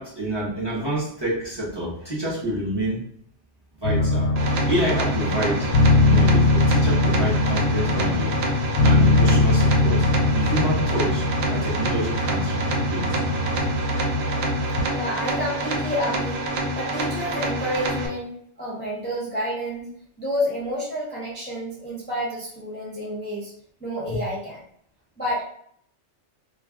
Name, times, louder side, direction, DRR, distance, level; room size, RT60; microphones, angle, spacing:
voice 1, 0.0-3.1 3.8-4.3 4.7-5.7 6.0-10.1 10.3-13.2 24.1-24.2, right 1 dB, 25° right, -6 dB, 0.8 m, -28 dB
sound 1, 3.8-14.8, left 2 dB, 80° left, 0.9 m, -21 dB
sound 2, 4.4-18.1, right 1 dB, 65° right, 0.7 m, -27 dB
voice 2, 14.9-16.4 16.7-19.9 20.2-23.5 23.8-24.6 25.2-25.4, equal, 10° left, -6 dB, 0.5 m, -29 dB
2.3 x 2.3 x 3.5 m, 0.64 s
omnidirectional pair, 1.2 m